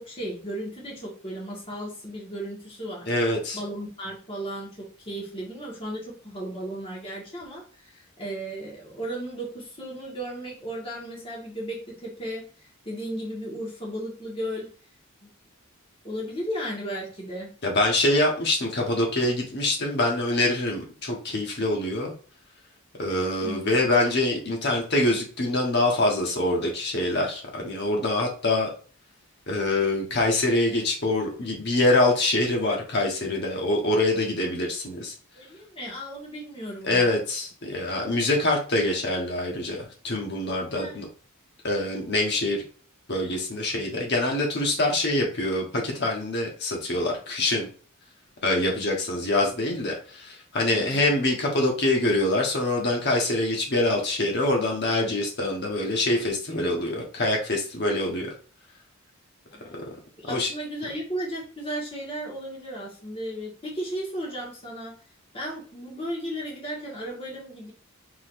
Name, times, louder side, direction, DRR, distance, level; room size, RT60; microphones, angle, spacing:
voice 1, 0.0-3.1 3.5-14.7 15.2-15.3 16.0-17.5 23.4-23.8 35.4-37.2 40.7-41.0 41.7-41.9 50.7-51.1 59.5-65.0 65.3-67.7, right 1 dB, 25° left, -3 dB, 1.7 m, -35 dB
voice 2, 3.1-3.6 17.6-22.1 23.0-28.7 29.5-35.1 36.8-41.1 41.6-42.6 43.1-47.7 48.4-58.3 59.7-59.8 60.3-60.5, left 2 dB, 50° left, 0 dB, 1.2 m, -25 dB
4.8 x 4.0 x 2.6 m, 0.40 s
head